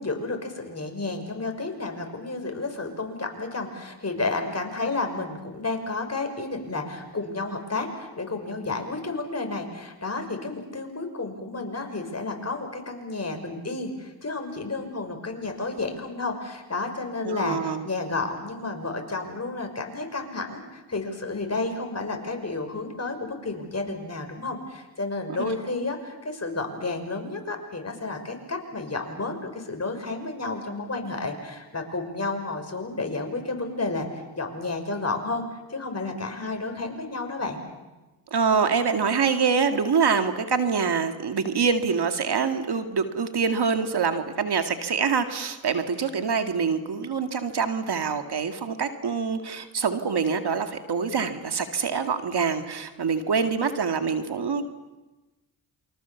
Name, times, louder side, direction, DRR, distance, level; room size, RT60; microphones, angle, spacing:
voice 1, 0.0-35.4 35.7-37.7, left 3 dB, 35° left, 4 dB, 6.0 m, -31 dB
voice 2, 17.2-17.8 25.4-25.5 38.3-54.6, right 5 dB, 55° right, 7 dB, 2.2 m, -25 dB
28.0 x 25.0 x 7.2 m, 1.1 s
supercardioid pair, 50°, 46 cm